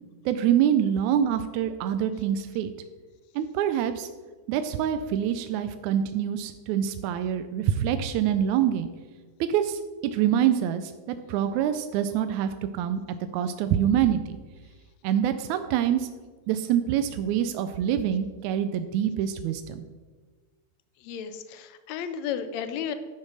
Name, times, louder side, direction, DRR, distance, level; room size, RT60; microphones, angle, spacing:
voice 1, 0.3-2.7 3.4-4.1 4.5-8.9 9.4-14.4 15.0-16.1 16.5-19.8, right 9 dB, 80° right, 9 dB, 1.9 m, -25 dB
voice 2, 21.0-22.9, left 8 dB, 75° left, 10 dB, 2.0 m, -33 dB
10.5 x 6.6 x 6.2 m, 1.4 s
omnidirectional pair, 3.5 m